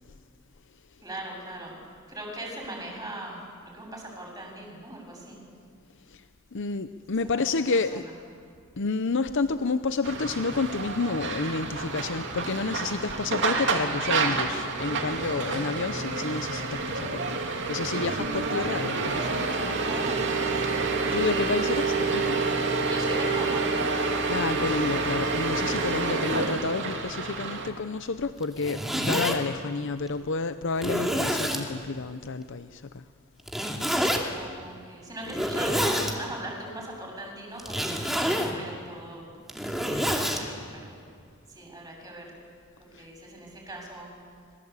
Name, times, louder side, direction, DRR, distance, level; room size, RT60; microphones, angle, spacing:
voice 1, 1.0-1.8 2.1-5.4 7.2-8.1 19.8-20.9 22.9-24.0 34.3-39.2 39.6-40.9 41.5-42.4 42.9-44.1, right 1 dB, 15° right, 0 dB, 7.4 m, -40 dB
voice 2, 6.5-8.1 8.8-20.0 21.1-22.4 24.3-33.1 42.9-43.1, left 4 dB, 60° left, 11 dB, 0.7 m, -30 dB
sound 1, 10.0-27.7, right 3 dB, 60° right, 2.8 m, -28 dB
Zipper (clothing), 28.4-29.4 30.1-30.2 30.8-31.6 33.5-34.2 35.2-36.1 37.6-38.5 39.3-40.4, equal, ahead, 2.6 m, -27 dB
26.0 x 22.0 x 8.3 m, 2.2 s
head